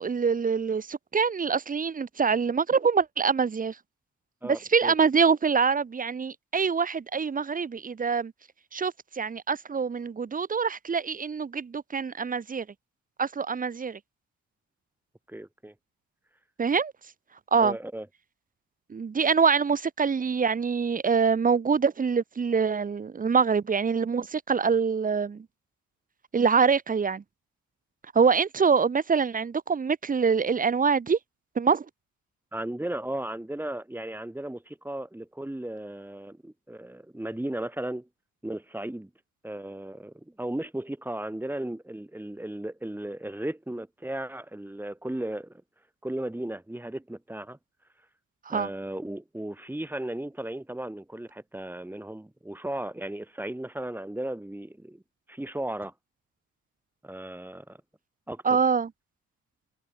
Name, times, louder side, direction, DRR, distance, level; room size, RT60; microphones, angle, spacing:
voice 1, 0.0-3.8 4.4-8.3 8.7-12.7 13.2-14.0 16.6-16.9 17.5-17.8 18.9-25.5 26.3-27.2 28.1-31.2 31.6-31.9 48.5-48.7 58.4-58.9, right 5 dB, 30° right, 1.0 m, -25 dB
voice 2, 4.4-4.9 15.3-15.7 17.6-18.1 32.5-38.1 38.4-39.1 39.4-45.6 46.0-47.6 48.5-55.0 55.3-55.9 57.0-57.8 58.3-58.6, right 1 dB, 5° right, 3.5 m, -35 dB
cardioid pair, 90°, 30 cm